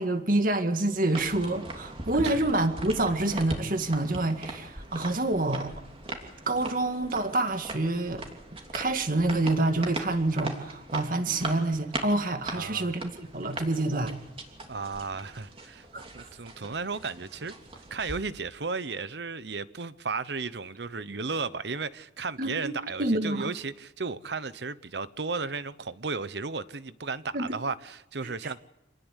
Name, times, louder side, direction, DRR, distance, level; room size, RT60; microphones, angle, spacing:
voice 1, 0.0-5.7 6.5-8.2 8.7-14.1 15.9-16.3 22.4-22.7 23.0-23.5 27.3-27.5 28.2-28.3, right 2 dB, 50° right, 2.0 m, -27 dB
sound 1, 1.1-18.2, right 2 dB, 35° right, 3.0 m, -40 dB
voice 2, 12.5-13.0 14.7-15.9 16.1-17.5 17.9-28.6, right 4 dB, 70° right, 1.0 m, -34 dB
26.5 x 18.5 x 8.3 m
head